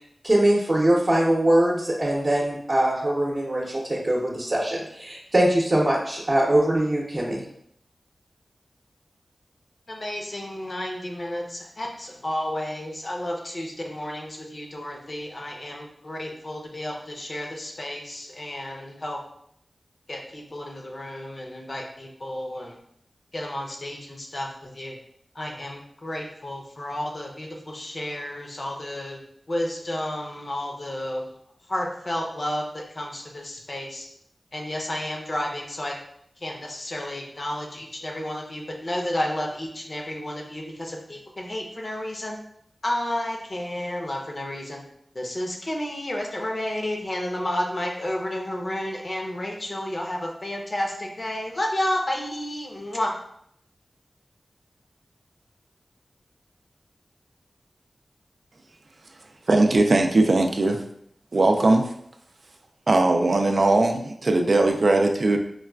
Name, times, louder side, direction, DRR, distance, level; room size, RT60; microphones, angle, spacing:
voice 1, 0.2-7.4, right 1 dB, 45° right, -4 dB, 0.7 m, -22 dB
voice 2, 9.9-19.2 20.1-22.8 23.3-25.0 25.3-29.2 29.5-31.4 31.7-34.1 34.5-35.9 36.4-42.4 42.8-44.8 45.1-53.1, left 1 dB, 50° left, 0 dB, 0.7 m, -31 dB
voice 3, 59.5-60.8 61.3-61.9 62.9-65.4, right 2 dB, 65° right, 4 dB, 0.4 m, -19 dB
4.6 x 2.3 x 2.3 m, 0.71 s
cardioid pair, 50°, 0 cm